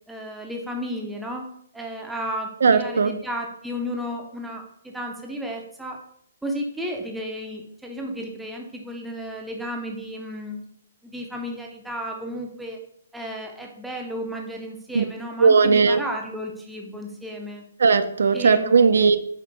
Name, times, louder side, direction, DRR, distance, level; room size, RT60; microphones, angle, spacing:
voice 1, 0.1-1.4 1.7-6.0 6.4-10.7 11.0-12.8 13.1-17.6 18.3-18.9, equal, ahead, 0 dB, 0.4 m, -33 dB
voice 2, 2.6-3.1 14.9-15.0 15.4-16.0 17.8-19.2, right 5 dB, 75° right, 10 dB, 0.4 m, -17 dB
5.0 x 3.0 x 3.2 m, 0.66 s
hypercardioid pair, 170°, 0 cm